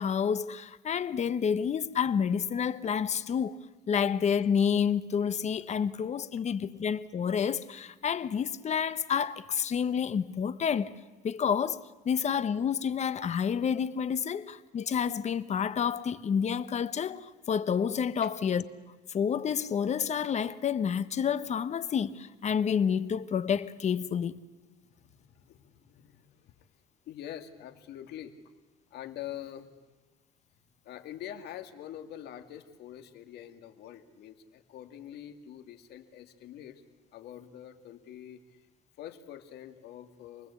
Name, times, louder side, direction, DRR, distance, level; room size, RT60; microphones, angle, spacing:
voice 1, 0.0-3.6 3.9-10.9 11.2-18.6 19.1-24.4, left 7 dB, 40° left, 1.0 m, -29 dB
voice 2, 24.9-26.7 27.1-28.4 28.9-29.7 30.8-36.8 37.1-38.6 39.0-40.5, left 11 dB, 75° left, 2.1 m, -45 dB
28.0 x 20.0 x 8.3 m
cardioid pair, 110°, 17 cm